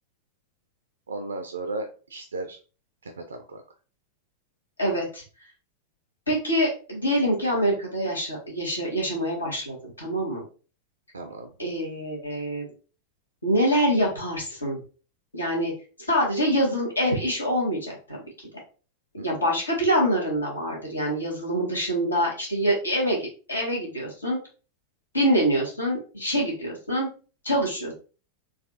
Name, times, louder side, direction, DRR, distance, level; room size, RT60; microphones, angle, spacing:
voice 1, 1.1-2.6 3.0-3.6 11.1-11.5 19.2-19.3, right 2 dB, 75° right, 6 dB, 0.4 m, -35 dB
voice 2, 4.8-5.2 6.3-10.4 11.6-12.6 13.4-14.8 15.3-15.7 16.1-18.2 19.2-24.4 25.1-27.1 27.4-27.9, equal, 80° left, -2 dB, 1.4 m, -25 dB
4.0 x 2.5 x 2.6 m, 0.36 s
figure-of-eight pair, 90°, 0 cm